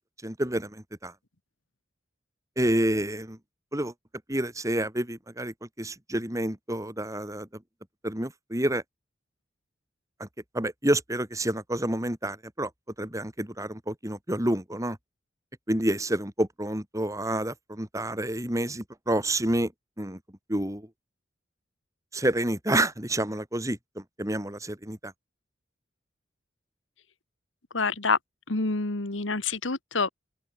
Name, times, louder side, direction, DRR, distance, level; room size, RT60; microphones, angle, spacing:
voice 1, 0.2-1.1 2.6-3.4 3.7-3.9 4.3-7.5 8.0-8.8 10.2-10.3 10.5-12.7 13.0-15.0 15.7-19.7 20.0-20.2 20.5-20.9 22.1-25.1, right 1 dB, 15° right, 3.2 m, -29 dB
voice 2, 27.7-28.2 28.5-30.1, left 4 dB, 85° left, 1.9 m, -27 dB
open air
head